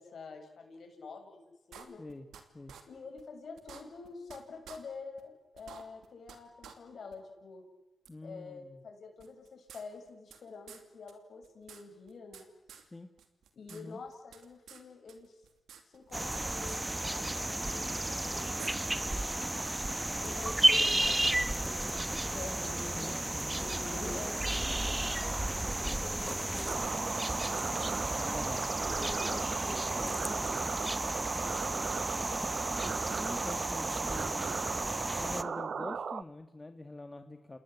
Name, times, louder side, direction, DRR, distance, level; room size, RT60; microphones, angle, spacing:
voice 1, 0.0-1.4 1.7-2.0 2.9-7.6 8.2-12.5 13.5-15.4 15.9-19.3 20.2-23.2 23.6-27.8 28.7-30.7 31.1-31.3, left 4 dB, 70° left, 4 dB, 7.3 m, -47 dB
sound 1, 1.7-2.4 2.7-2.8 3.2-3.3 3.6-4.4 4.6-4.8 5.2-5.3 5.6-6.4 6.6-6.7 7.1-7.2 8.0-8.1 9.2-10.4 10.7-10.8 11.1-11.2 11.4-12.4 12.7-12.8 13.2-13.8 14.1-14.8 15.1-16.4 16.7-16.8 17.9-18.0 18.6-18.7, right 8 dB, 90° right, 2.7 m, -50 dB
voice 2, 8.1-8.8 12.8-13.1 13.7-14.0 20.0-20.3 23.0-23.5 23.8-24.2 28.1-28.7 31.8-32.2 32.9-34.5 35.2-37.6, left 2 dB, 30° left, 7 dB, 2.0 m, -46 dB
sound 2, 16.1-35.4, right 1 dB, 20° right, 1.3 m, -33 dB
sound 3, 26.7-36.2, right 6 dB, 65° right, 0.9 m, -37 dB
29.5 x 19.5 x 8.4 m, 1.1 s
supercardioid pair, 50°, 0 cm